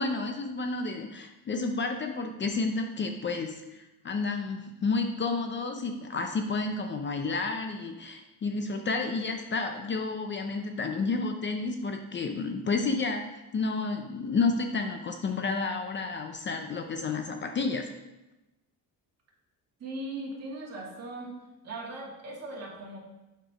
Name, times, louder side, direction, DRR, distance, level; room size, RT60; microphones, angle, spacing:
voice 1, 0.0-13.2 13.5-17.9, left 4 dB, 30° left, 5 dB, 0.6 m, -31 dB
voice 2, 19.8-21.3 21.6-23.0, right 2 dB, 45° right, -3 dB, 2.2 m, -39 dB
7.8 x 4.6 x 5.0 m, 1.0 s
cardioid pair, 130°, 35 cm